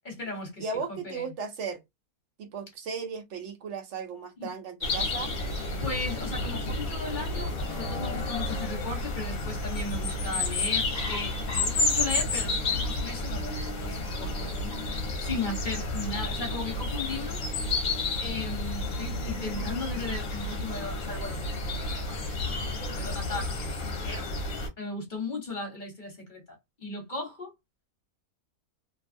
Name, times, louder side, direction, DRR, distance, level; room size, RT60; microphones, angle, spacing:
voice 1, 0.0-1.3 4.4-4.5 5.8-14.5 15.2-17.4 18.2-21.5 22.1-22.2 23.0-23.7 24.0-24.3 24.8-27.5, left 3 dB, 30° left, 1.3 m, -36 dB
voice 2, 0.6-1.8 2.4-5.3, right 5 dB, 60° right, 0.8 m, -36 dB
sound 1, 4.8-24.7, left 2 dB, 60° left, 1.1 m, -31 dB
2.8 x 2.3 x 2.5 m
omnidirectional pair, 1.7 m